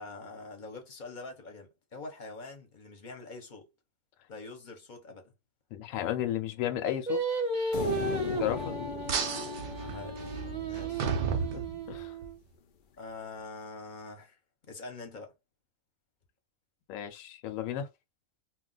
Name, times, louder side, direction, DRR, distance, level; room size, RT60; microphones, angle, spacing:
voice 1, 0.0-3.7 4.3-5.3 8.0-8.3 9.8-10.4 10.7-11.1 13.0-14.4 14.7-15.3, left 3 dB, 40° left, 0.8 m, -45 dB
voice 2, 5.7-7.2 8.4-8.7 11.5-11.6 11.9-12.2 16.9-17.9, left 11 dB, 75° left, 1.0 m, -33 dB
Singing, 7.1-12.3, right 3 dB, 40° right, 0.8 m, -34 dB
sound 1, 7.7-11.1, left 7 dB, 90° left, 0.4 m, -38 dB
sound 2, 9.1-12.3, right 6 dB, 65° right, 0.5 m, -34 dB
2.3 x 2.1 x 3.7 m
omnidirectional pair, 1.5 m